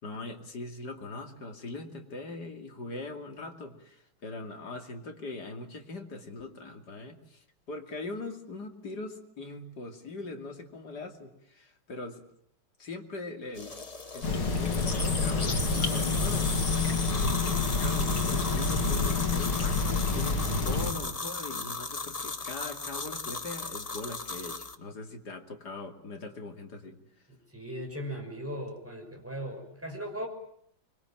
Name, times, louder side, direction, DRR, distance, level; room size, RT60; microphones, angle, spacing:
voice 1, 0.0-12.2 12.8-13.7 14.1-27.0, left 2 dB, 50° left, 4 dB, 3.2 m, -41 dB
sound 1, 13.6-24.8, left 3 dB, 25° left, 0.9 m, -36 dB
sound 2, 14.2-20.9, left 4 dB, 80° left, 3.8 m, -28 dB
voice 2, 27.3-30.3, equal, 5° right, 2 dB, 6.1 m, -38 dB
24.5 x 23.0 x 9.0 m, 0.70 s
omnidirectional pair, 2.3 m